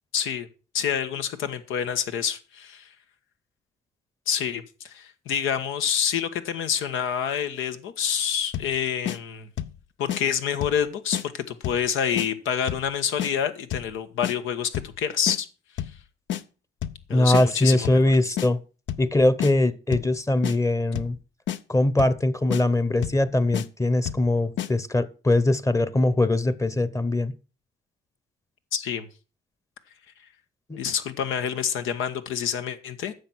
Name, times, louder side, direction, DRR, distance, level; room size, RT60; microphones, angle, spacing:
voice 1, 0.1-0.5 0.7-2.9 4.3-9.5 10.0-15.5 17.1-18.0 28.7-29.1 30.8-33.1, left 8 dB, 90° left, 1.3 m, -27 dB
sound 1, 8.5-8.8 9.1-9.2 9.6-9.8 10.1-10.2 10.6-10.8 11.1-11.3 11.6-11.9 12.2-12.3 12.7-12.9 13.2-13.3 13.7-13.9 14.2-14.4 14.7-15.0 15.3-15.4 15.8-16.0 16.3-16.4 16.8-17.0 17.3-17.5 17.8-18.1 18.4-18.5 18.9-19.1 19.4-19.5 19.9-20.1 20.4-20.6 21.0-21.2 21.5-21.6 22.0-22.2 22.5-22.6 23.0-23.2 23.5-23.7 24.1-24.3 24.6-24.7, left 11 dB, 70° left, 0.7 m, -30 dB
voice 2, 17.1-18.6 19.0-21.2 21.7-27.3 30.7-30.8, left 2 dB, 15° left, 0.9 m, -22 dB
10.0 x 6.9 x 6.1 m
cardioid pair, 90°, 20 cm